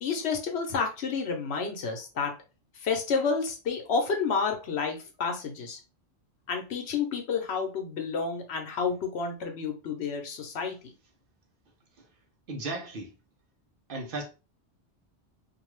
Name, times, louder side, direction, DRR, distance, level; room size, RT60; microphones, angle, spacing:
voice 1, 0.0-2.3 2.8-5.8 6.5-10.8, left 5 dB, 70° left, 1.0 m, -30 dB
voice 2, 12.5-13.1 13.9-14.2, right 2 dB, 55° right, 0.8 m, -35 dB
2.6 x 2.3 x 3.0 m
omnidirectional pair, 1.2 m